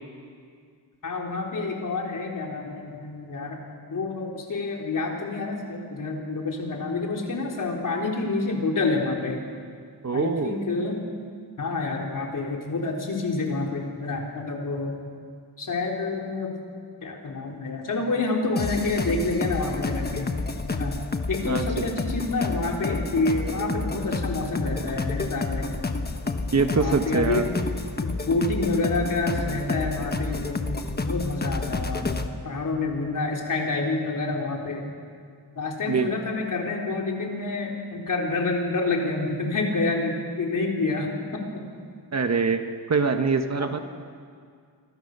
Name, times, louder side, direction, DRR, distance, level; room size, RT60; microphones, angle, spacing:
voice 1, 1.0-3.6 3.9-9.4 10.1-11.0 11.6-15.0 15.6-16.5 17.0-20.3 20.7-21.0 21.3-25.8 26.7-27.4 28.0-30.7 31.0-34.8 35.6-41.1 41.3-41.6 43.6-43.7, left 3 dB, 50° left, 0 dB, 4.0 m, -28 dB
voice 2, 10.0-10.6 21.5-21.9 26.5-27.4 35.9-36.1 42.1-43.8, right 5 dB, 40° right, 7 dB, 1.2 m, -24 dB
sound 1, 18.6-32.3, left 3 dB, 25° left, 1.2 m, -30 dB
27.0 x 24.0 x 6.7 m, 2.1 s
wide cardioid pair, 180°, 41 cm